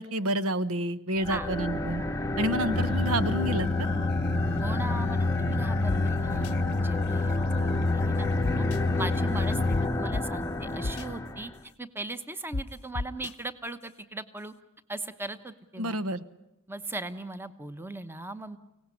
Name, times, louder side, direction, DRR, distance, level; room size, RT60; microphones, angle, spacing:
voice 1, 0.0-2.0 2.4-3.7 15.8-16.2, right 1 dB, 90° right, 15 dB, 1.0 m, -29 dB
sound 1, 1.2-11.6, left 1 dB, 15° left, 0.8 m, -31 dB
sound 2, 2.7-9.9, left 3 dB, 50° left, 0.8 m, -28 dB
voice 2, 4.6-8.6 9.0-11.5 11.8-14.5 14.9-16.0 16.7-18.6, right 2 dB, 10° right, 12 dB, 1.0 m, -38 dB
sound 3, 5.9-6.0 6.4-6.5 8.4-8.8 9.7-9.8 10.1-10.2 10.8-11.0 12.5-12.6 12.9-13.3, left 2 dB, 80° left, 0.8 m, -31 dB
24.5 x 18.0 x 9.9 m, 0.96 s
head